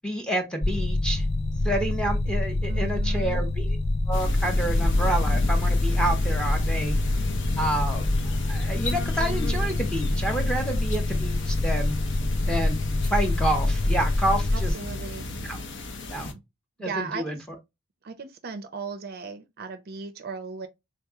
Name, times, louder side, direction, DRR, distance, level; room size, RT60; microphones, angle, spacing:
voice 1, 0.0-1.2 1.6-3.8 4.1-7.0 7.6-8.1 8.5-12.0 12.5-14.7 15.4-15.6 16.1-16.3 16.8-17.4, right 1 dB, 5° left, 0.8 m, -29 dB
sound 1, 0.6-14.7, left 2 dB, 30° left, 0.4 m, -25 dB
voice 2, 2.7-3.4 7.4-7.5 14.5-15.3 16.8-17.4 18.0-20.7, right 4 dB, 45° right, 0.5 m, -37 dB
sound 2, 4.1-16.3, left 2 dB, 55° left, 0.7 m, -36 dB
sound 3, 8.7-9.0 10.8-11.0 12.8-13.1, left 5 dB, 80° left, 1.2 m, -36 dB
3.7 x 2.9 x 3.5 m
head